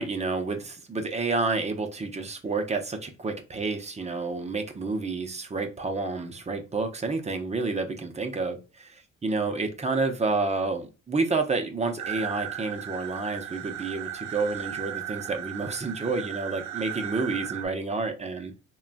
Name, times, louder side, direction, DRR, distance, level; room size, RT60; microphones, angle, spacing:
voice 1, 0.0-8.9 9.2-18.5, right 3 dB, 20° right, 5 dB, 0.6 m, -29 dB
sound 1, 12.0-17.7, right 10 dB, 70° right, 0.6 m, -36 dB
3.6 x 2.2 x 2.5 m, 0.31 s
cardioid pair, 90°, 30 cm